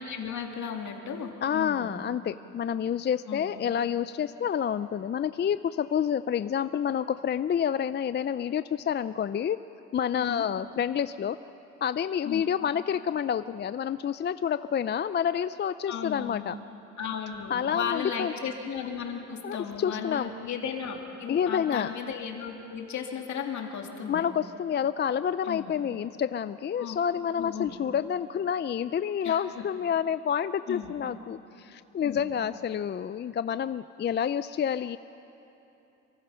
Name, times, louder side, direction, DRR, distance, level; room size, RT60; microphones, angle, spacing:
voice 1, 0.0-1.9 3.3-3.5 10.2-10.4 12.2-12.4 15.9-16.4 17.0-24.3 25.4-25.7 26.8-27.0 27.4-27.8 29.2-29.6 30.7-30.9 32.0-32.3, left 7 dB, 70° left, 2 dB, 2.6 m, -35 dB
voice 2, 1.4-9.6 9.9-11.4 11.8-16.5 17.5-18.3 19.4-20.3 21.3-21.9 24.1-35.0, left 8 dB, 35° left, 13 dB, 0.4 m, -28 dB
26.5 x 24.0 x 5.7 m, 2.9 s
cardioid pair, 90°, 30 cm